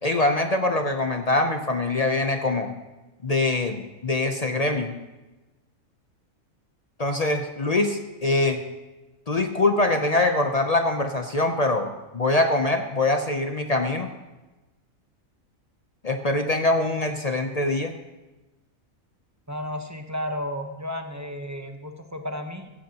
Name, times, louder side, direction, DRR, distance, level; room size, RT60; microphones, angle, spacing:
voice 1, 0.0-2.7 3.2-5.0 7.0-8.6 9.3-14.1 16.0-17.9, left 2 dB, 40° left, 6 dB, 0.6 m, -23 dB
voice 2, 19.5-22.7, left 1 dB, 15° right, 5 dB, 0.7 m, -33 dB
15.5 x 14.5 x 2.9 m, 1.1 s
omnidirectional pair, 1.4 m